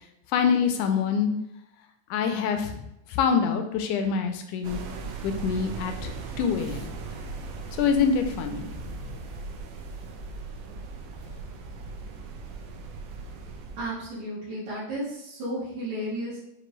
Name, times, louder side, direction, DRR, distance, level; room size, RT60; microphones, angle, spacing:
voice 1, 0.3-1.3 2.1-2.8 3.1-4.8 5.2-6.1 6.4-6.9 7.8-9.1, left 6 dB, 85° left, 5 dB, 2.0 m, -25 dB
sound 1, 4.6-13.9, right 4 dB, 80° right, 1.5 m, -38 dB
voice 2, 13.8-16.4, right 1 dB, 65° right, -9 dB, 2.3 m, -33 dB
6.1 x 2.5 x 3.1 m, 0.82 s
omnidirectional pair, 3.6 m